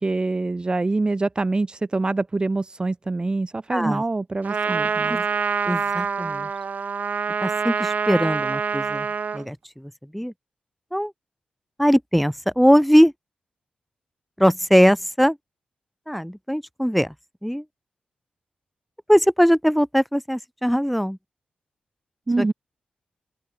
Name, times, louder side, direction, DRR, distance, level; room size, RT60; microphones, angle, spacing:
voice 1, 0.0-5.2 22.3-22.5, right 3 dB, 30° right, 3.1 m, -25 dB
voice 2, 3.7-4.0 5.1-5.2 5.7-6.5 7.4-9.1 9.3-10.3 10.9-11.1 11.8-13.1 14.4-15.4 16.1-17.1 17.4-17.6 19.1-21.2 22.4-22.5, equal, ahead, 7.5 m, -20 dB
Trumpet, 4.4-9.5, right 5 dB, 60° right, 3.0 m, -25 dB
open air
cardioid pair, 70°, 3 cm